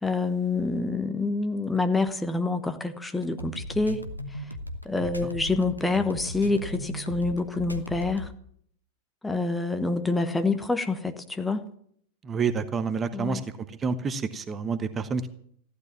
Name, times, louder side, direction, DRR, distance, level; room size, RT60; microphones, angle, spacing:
voice 1, 0.0-4.0 4.3-4.5 4.8-8.3 9.2-11.6 13.1-13.4, left 3 dB, 10° left, 8 dB, 1.1 m, -27 dB
sound 1, 3.2-8.3, left 1 dB, 90° left, 1.2 m, -37 dB
voice 2, 12.2-13.4 13.7-15.3, right 5 dB, 20° right, 12 dB, 1.0 m, -28 dB
15.0 x 12.0 x 7.2 m, 0.65 s
figure-of-eight pair, 90°, 0 cm